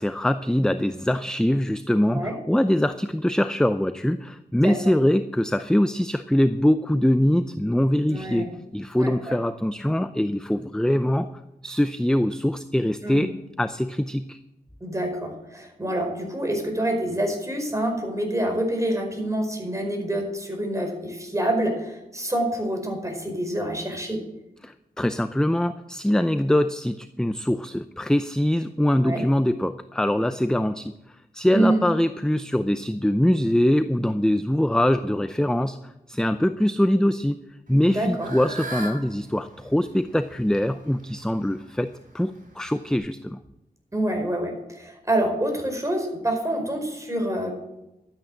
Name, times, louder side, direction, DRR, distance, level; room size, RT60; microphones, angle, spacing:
voice 1, 0.0-8.5 8.7-11.3 11.6-14.4 24.6-30.9 31.3-37.4 37.7-43.4, left 1 dB, 5° left, 11 dB, 0.6 m, -23 dB
voice 2, 8.1-8.5 9.0-9.1 13.0-13.3 14.8-24.2 28.9-29.2 31.5-31.8 37.9-38.3 43.9-47.6, right 1 dB, 20° right, 3 dB, 4.9 m, -27 dB
Fowl / Bird, 37.7-43.0, right 2 dB, 55° right, 6.0 m, -40 dB
12.5 x 9.0 x 7.3 m, 0.92 s
cardioid pair, 50°, 17 cm